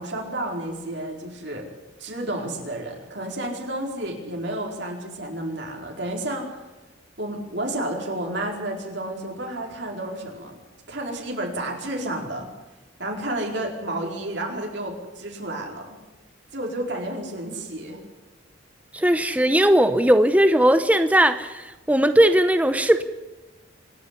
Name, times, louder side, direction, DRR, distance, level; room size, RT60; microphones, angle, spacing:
voice 1, 0.0-1.7 2.0-6.6 7.2-10.6 10.9-12.5 13.0-16.0 16.5-18.0, right 1 dB, 60° right, 0 dB, 4.6 m, -31 dB
voice 2, 18.9-23.0, right 1 dB, 5° right, 9 dB, 0.8 m, -18 dB
26.5 x 10.5 x 9.8 m, 1.1 s
head